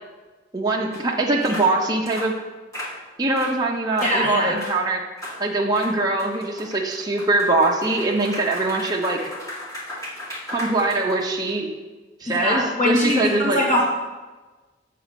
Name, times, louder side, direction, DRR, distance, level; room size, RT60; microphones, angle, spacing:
voice 1, 0.5-2.3 3.2-5.0 5.4-9.2 10.5-11.7 12.2-13.6, right 2 dB, 20° right, -1 dB, 0.8 m, -22 dB
sound 1, 0.9-1.0 1.4-1.7 2.1-2.3 2.7-2.9 3.4-3.6 4.0-4.2 4.6-4.8 5.2-5.4 5.7-11.5, left 1 dB, 15° left, 2.0 m, -35 dB
voice 2, 4.0-4.6 12.2-13.8, left 1 dB, 40° left, -4 dB, 2.4 m, -22 dB
7.7 x 4.0 x 6.9 m, 1.2 s
head